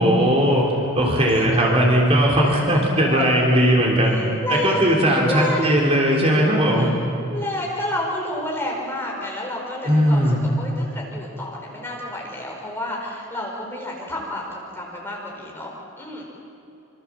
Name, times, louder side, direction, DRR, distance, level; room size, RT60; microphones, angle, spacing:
voice 1, 0.0-4.2 4.5-6.9 9.8-10.4, equal, 30° right, -2 dB, 3.7 m, -18 dB
voice 2, 2.5-2.8 3.1-3.3 4.1-4.9 5.2-5.8 6.7-6.9 7.3-15.7 16.0-16.3, left 1 dB, 10° left, -2 dB, 5.1 m, -30 dB
26.5 x 25.5 x 7.6 m, 2.7 s
head